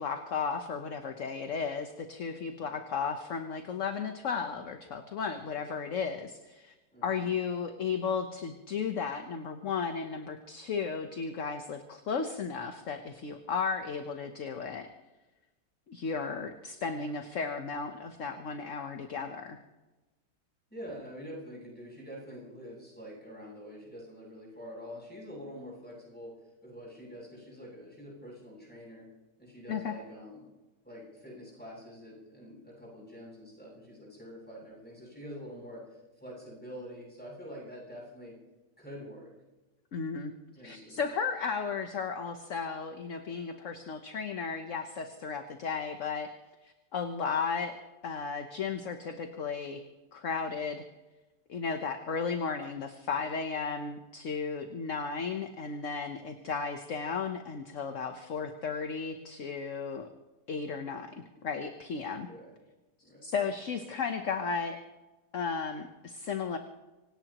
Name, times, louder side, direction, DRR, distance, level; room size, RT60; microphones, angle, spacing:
voice 1, 0.0-6.7 7.0-14.9 15.9-19.6 29.7-29.9 39.9-40.3 40.6-46.3 46.6-47.8 48.0-49.8 50.1-50.8 51.5-60.1 60.5-61.1 61.4-62.3 63.2-64.8 65.3-66.6, left 5 dB, 50° left, 6 dB, 1.2 m, -34 dB
voice 2, 6.9-7.3 20.7-26.3 26.6-29.1 29.4-30.5 30.8-38.3 38.8-39.3 40.5-41.0 62.3-62.5 63.0-63.2, equal, 5° left, -4 dB, 7.9 m, -46 dB
26.5 x 17.5 x 3.0 m, 1.1 s
omnidirectional pair, 1.8 m